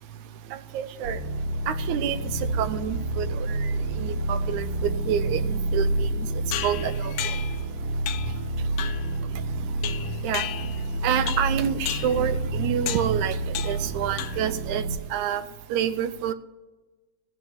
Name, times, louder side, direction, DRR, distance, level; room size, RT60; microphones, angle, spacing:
voice 1, 0.5-1.2 1.7-6.3 6.6-7.1 10.2-10.5 11.0-14.8 15.1-15.4 15.7-16.3, right 9 dB, 80° right, 13 dB, 1.9 m, -28 dB
sound 1, 1.0-15.0, right 1 dB, 55° right, 2.5 m, -29 dB
sound 2, 6.5-7.6 8.1-8.4 8.8-9.1 9.8-10.9 11.3-11.6 11.9-12.2 12.9-13.2 13.5-13.9 14.2-14.6, left 12 dB, 80° left, 1.6 m, -33 dB
13.5 x 8.7 x 8.3 m, 1.2 s
omnidirectional pair, 3.7 m